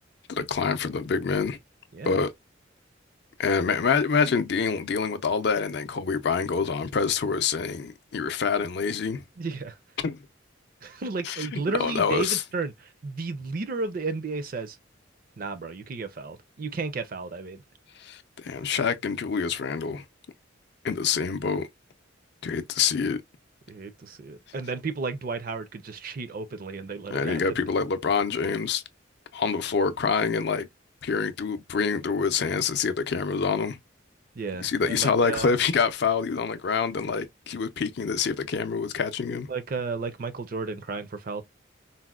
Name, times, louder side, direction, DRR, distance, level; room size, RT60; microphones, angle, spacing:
voice 1, 0.4-1.6 2.0-2.3 3.4-9.2 10.0-10.2 11.2-12.4 18.0-20.0 20.8-21.7 22.4-23.2 27.1-28.8 29.3-30.7 31.0-33.8 34.6-39.5, left 5 dB, 55° left, 0.4 m, -26 dB
voice 2, 9.4-9.8 10.8-14.8 15.4-17.6 23.7-27.4 34.4-35.5 39.5-41.4, right 4 dB, 45° right, 0.4 m, -33 dB
4.0 x 2.1 x 2.2 m
head